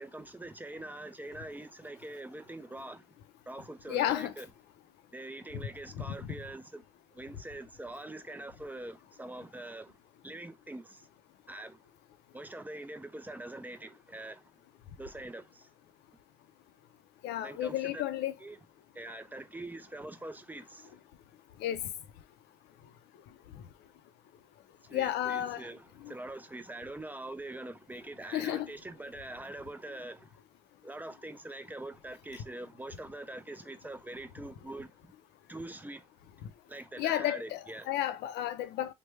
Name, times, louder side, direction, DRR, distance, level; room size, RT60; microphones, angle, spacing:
voice 1, 0.0-3.0 3.5-4.5 5.1-6.8 7.1-10.0 10.2-11.1 11.5-11.8 12.3-14.5 15.0-15.7 17.4-18.0 18.4-18.6 18.9-21.0 24.8-30.4 30.8-35.1 35.5-36.1 36.7-37.9, right 2 dB, 10° right, 0.4 m, -44 dB
voice 2, 3.9-4.3 6.1-6.3 17.2-18.3 21.6-21.8 24.9-25.6 26.0-26.1 28.3-28.7 37.0-38.9, left 12 dB, 80° left, 0.5 m, -32 dB
3.2 x 2.1 x 3.1 m
cardioid pair, 110°, 17 cm